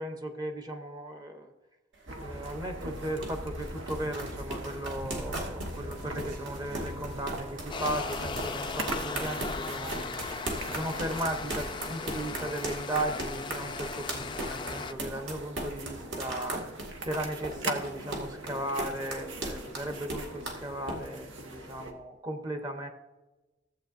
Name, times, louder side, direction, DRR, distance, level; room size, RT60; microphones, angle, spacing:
voice 1, 0.0-1.5 2.2-10.2 10.6-16.8 17.0-22.9, right 1 dB, 20° right, 5 dB, 0.9 m, -36 dB
sound 1, 1.9-21.0, right 1 dB, 65° right, 2.1 m, -38 dB
sound 2, 2.1-21.9, right 1 dB, 85° right, 1.2 m, -41 dB
sound 3, 7.7-14.9, left 4 dB, 25° left, 0.4 m, -37 dB
14.5 x 8.2 x 2.6 m, 1.1 s
head